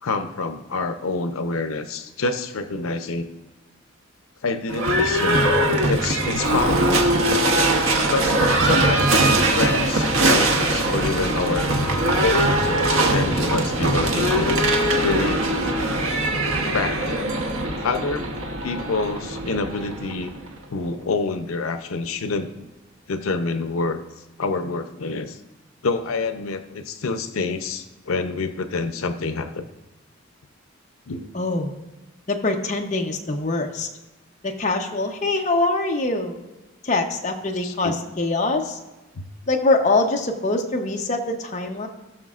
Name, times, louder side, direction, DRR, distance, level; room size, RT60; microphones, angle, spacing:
voice 1, 0.0-3.3 4.4-7.0 8.1-11.7 12.2-14.6 15.0-15.5 16.7-17.4 17.8-18.3 18.6-20.3 20.7-22.7 23.1-24.0 24.4-25.4 25.8-29.7 31.1-31.3 37.6-37.9 39.2-39.3, left 3 dB, 85° left, 8 dB, 0.6 m, -27 dB
Livestock farm animals working animals / Bell, 4.7-20.6, right 1 dB, 80° right, 1.1 m, -21 dB
voice 2, 31.3-31.8 32.3-33.9 34.4-36.4 36.8-38.8 39.5-41.9, left 2 dB, 35° left, 2 dB, 0.8 m, -23 dB
17.5 x 6.1 x 2.4 m, 1.1 s
head